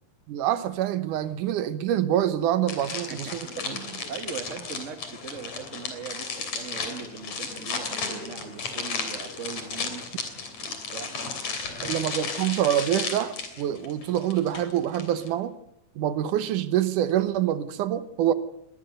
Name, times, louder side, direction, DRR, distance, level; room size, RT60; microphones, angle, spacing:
voice 1, 0.3-3.4 11.8-15.5 16.0-18.3, right 11 dB, 85° right, 2.6 m, -26 dB
sound 1, 2.7-15.3, left 4 dB, 60° left, 4.4 m, -34 dB
voice 2, 2.9-3.4 3.6-10.3 10.6-11.2 11.6-12.1, right 6 dB, 35° right, 1.3 m, -40 dB
sound 2, 8.7-8.9 9.6-15.0 16.0-16.1 16.5-17.3 17.6-17.7, left 3 dB, 45° left, 4.2 m, -52 dB
23.0 x 19.5 x 6.6 m
omnidirectional pair, 3.5 m